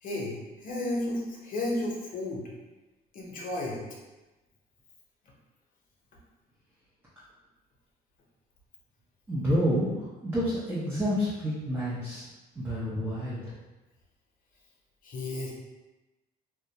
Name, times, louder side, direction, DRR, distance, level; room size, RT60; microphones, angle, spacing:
voice 1, 0.0-2.4 3.1-3.8 5.2-5.3 15.0-15.5, left 1 dB, 55° left, -2 dB, 0.7 m, -33 dB
voice 2, 9.3-12.2 12.6-13.4, equal, 15° right, -9 dB, 0.6 m, -29 dB
2.3 x 2.1 x 2.7 m, 1.1 s
cardioid pair, 110°, 17 cm